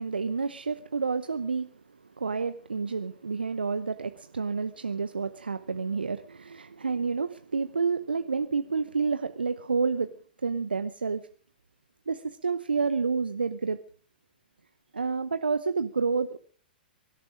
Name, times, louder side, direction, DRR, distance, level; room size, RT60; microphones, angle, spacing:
voice 1, 0.0-1.7 2.2-10.1 10.4-11.2 12.1-13.8 14.9-16.4, right 5 dB, 80° right, 11 dB, 0.8 m, -29 dB
23.5 x 12.0 x 5.1 m, 0.43 s
figure-of-eight pair, 105°, 5 cm